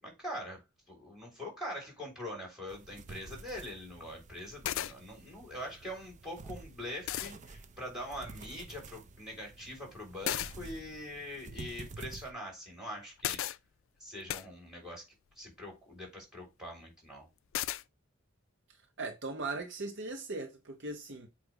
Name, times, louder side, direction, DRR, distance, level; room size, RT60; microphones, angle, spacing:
voice 1, 0.0-0.6 0.9-13.4 14.0-15.0 15.4-17.3, equal, 5° right, 3.4 m, -43 dB
sound 1, 2.7-12.3, right 3 dB, 35° right, 0.5 m, -50 dB
sound 2, 3.3-3.4 4.4-4.5 4.6-4.9 6.5-6.6 7.1-7.3 10.2-10.5 13.2-13.6 14.3-14.5 17.5-17.8, left 12 dB, 70° left, 0.3 m, -34 dB
voice 2, 19.0-21.3, right 3 dB, 60° right, 0.9 m, -39 dB
7.9 x 2.7 x 4.7 m
head